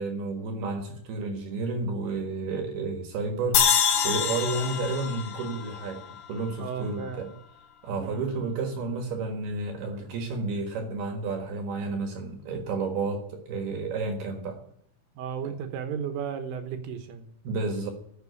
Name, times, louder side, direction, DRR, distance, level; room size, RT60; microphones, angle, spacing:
voice 1, 0.0-7.3 7.8-14.6 17.4-17.9, right 3 dB, 60° right, 4 dB, 3.1 m, -31 dB
sound 1, 3.5-6.8, left 8 dB, 85° left, 4.0 m, -26 dB
voice 2, 6.6-7.3 8.0-8.3 15.2-17.3, right 7 dB, 80° right, 7 dB, 3.8 m, -34 dB
12.5 x 7.7 x 9.6 m, 0.66 s
omnidirectional pair, 5.7 m